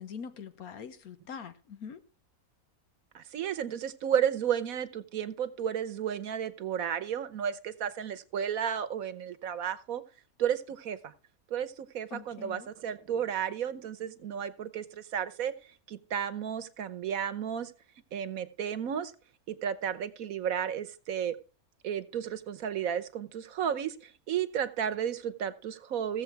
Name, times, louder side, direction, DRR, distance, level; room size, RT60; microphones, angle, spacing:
voice 1, 0.0-2.0 12.1-12.7, left 6 dB, 75° left, 1.4 m, -43 dB
voice 2, 3.1-10.0 10.4-11.0 11.5-15.5 15.9-17.7 18.1-19.1 19.5-21.4 21.8-26.2, right 9 dB, 70° right, 1.3 m, -33 dB
16.0 x 7.5 x 4.6 m
omnidirectional pair, 1.6 m